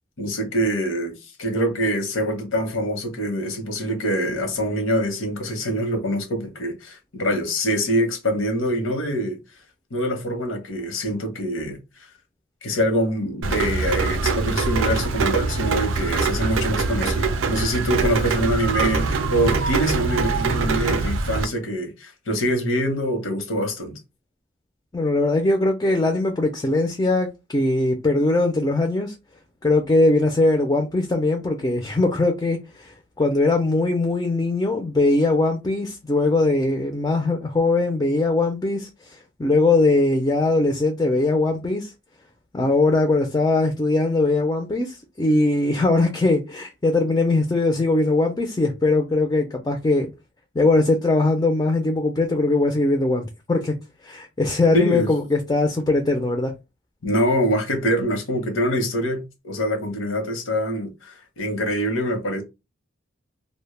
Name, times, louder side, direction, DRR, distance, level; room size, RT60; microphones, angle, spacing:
voice 1, 0.2-9.4 9.9-11.8 12.6-24.0 54.7-55.1 57.0-62.4, equal, 85° left, 0.8 m, -24 dB
Rain, 13.4-21.4, right 4 dB, 80° right, 0.4 m, -23 dB
voice 2, 24.9-29.1 29.6-38.9 39.4-41.9 42.5-50.1 50.6-53.7 54.0-56.5, left 2 dB, 20° left, 0.3 m, -21 dB
2.1 x 2.0 x 3.1 m
head